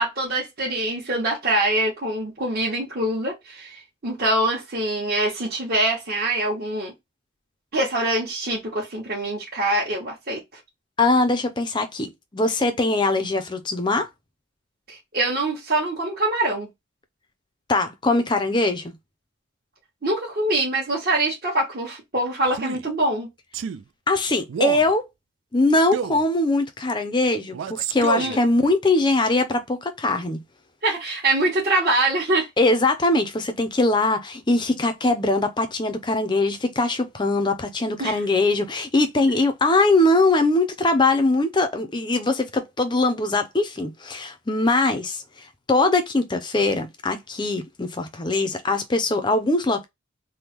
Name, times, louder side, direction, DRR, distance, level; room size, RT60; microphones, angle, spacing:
voice 1, 0.0-6.9 7.7-10.6 14.9-16.7 20.0-23.3 28.2-28.4 30.8-32.5 38.0-38.2, right 1 dB, 50° right, 1.3 m, -24 dB
voice 2, 11.0-14.1 17.7-18.9 24.1-25.0 25.5-30.4 32.6-49.9, left 2 dB, 20° left, 0.5 m, -22 dB
Male speech man speaking, 22.5-22.9 23.5-23.8 24.5-24.9 25.9-26.2 27.5-28.4, right 7 dB, 70° right, 0.3 m, -28 dB
3.5 x 2.2 x 2.9 m
head